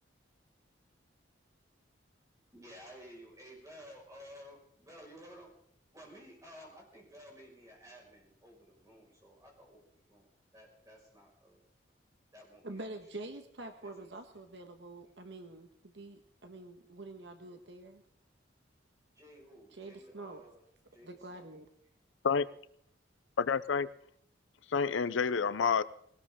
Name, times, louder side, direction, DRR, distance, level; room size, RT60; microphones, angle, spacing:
voice 1, 2.5-5.5 5.9-11.6 12.3-13.0 13.8-14.2 19.1-21.5, equal, 15° right, -2 dB, 5.5 m, -54 dB
voice 2, 12.6-18.0 19.7-20.4 21.0-21.7, right 2 dB, 65° right, 6 dB, 1.4 m, -46 dB
voice 3, 23.4-23.9 24.7-25.8, left 6 dB, 75° left, 15 dB, 0.6 m, -28 dB
19.5 x 18.5 x 3.7 m, 0.66 s
head